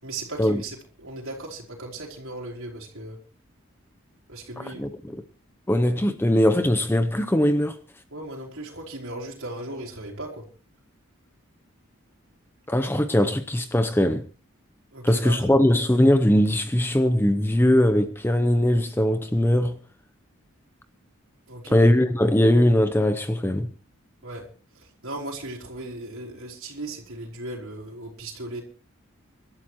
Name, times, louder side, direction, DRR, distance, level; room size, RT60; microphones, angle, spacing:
voice 1, 0.0-0.8 1.0-3.2 4.3-4.9 8.1-10.4 14.9-15.3 21.5-21.8 24.2-24.5 25.0-28.6, right 2 dB, 70° right, 4.2 m, -37 dB
voice 2, 4.6-5.2 5.7-7.8 12.7-14.3 15.0-19.8 21.7-23.7, left 1 dB, 10° left, 0.6 m, -21 dB
26.0 x 12.5 x 3.0 m
head